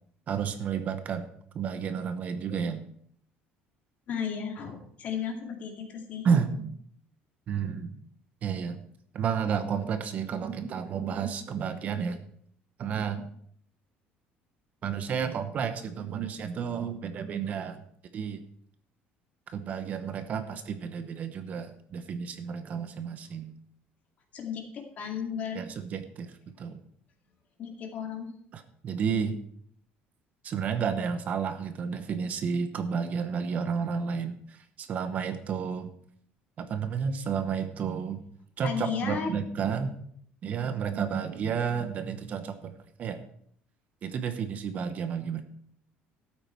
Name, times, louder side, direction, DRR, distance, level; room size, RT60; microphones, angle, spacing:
voice 1, 0.3-1.3 1.5-2.8 6.2-6.7 7.5-7.9 8.4-8.8 9.1-12.2 12.8-13.3 14.8-17.8 18.1-18.4 19.5-23.5 25.5-26.8 28.5-29.4 30.4-34.4 34.8-35.9 36.6-38.2 38.6-40.0 40.4-42.7 43.0-43.2 44.0-45.4, right 6 dB, 40° right, 9 dB, 1.0 m, -31 dB
voice 2, 4.1-6.3 24.3-25.6 27.6-28.3 38.6-39.3, left 7 dB, 40° left, 2 dB, 2.4 m, -34 dB
13.0 x 8.8 x 4.5 m, 0.65 s
cardioid pair, 155°, 4 cm